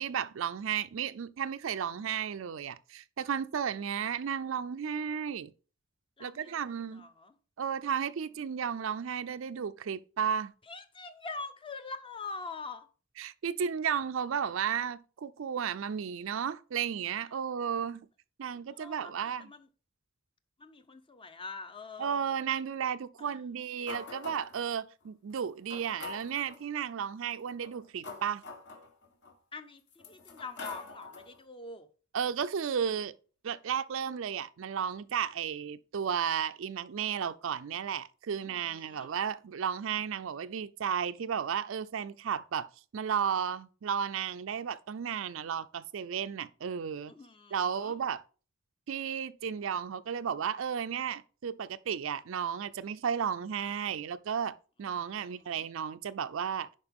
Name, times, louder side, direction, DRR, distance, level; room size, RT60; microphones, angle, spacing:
voice 1, 0.0-5.5 6.2-7.1 7.6-10.5 13.2-18.1 18.4-19.5 22.0-28.4 32.1-33.1 33.4-42.7 42.9-47.1 47.5-48.2 48.9-56.7, right 7 dB, 65° right, 0.4 m, -33 dB
voice 2, 6.2-7.3 10.7-12.9 18.5-19.7 20.6-22.4 23.2-23.4 29.5-31.9 38.4-39.1 47.1-47.9 54.9-55.7, left 4 dB, 25° left, 0.6 m, -45 dB
sound 1, 23.9-24.7 25.3-25.4 25.7-26.6 27.5-29.3 29.9-31.4, left 4 dB, 55° left, 1.2 m, -45 dB
10.5 x 4.4 x 3.5 m
head